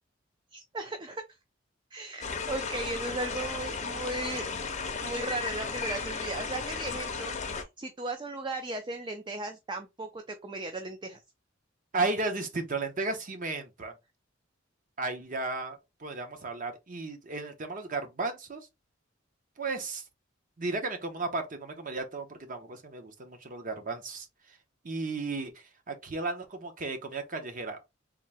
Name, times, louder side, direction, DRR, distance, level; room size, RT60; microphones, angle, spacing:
voice 1, 0.5-1.2 1.9-4.6 5.0-11.2, right 2 dB, 25° right, 0.4 m, -36 dB
sound 1, 2.2-7.6, left 5 dB, 35° left, 0.6 m, -35 dB
voice 2, 11.9-13.9 15.0-18.7 19.6-20.0 20.6-24.6 24.8-27.8, right 3 dB, 45° right, 0.9 m, -34 dB
3.7 x 2.7 x 3.3 m
head